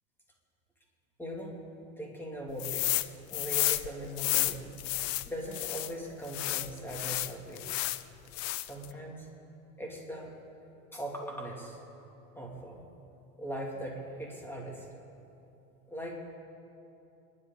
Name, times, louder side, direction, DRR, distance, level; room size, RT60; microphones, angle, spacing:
voice 1, 1.2-1.5 2.0-3.0 3.3-4.7 5.3-7.7 8.6-9.3 9.8-10.3 10.9-11.8 12.3-12.8 13.4-14.9 15.9-16.1, right 1 dB, 5° left, -1 dB, 2.6 m, -40 dB
sound 1, 2.6-3.1 3.3-5.9 6.3-8.0 8.3-8.9, left 16 dB, 65° left, 0.7 m, -31 dB
28.0 x 11.0 x 4.0 m, 2.9 s
supercardioid pair, 130°, 42 cm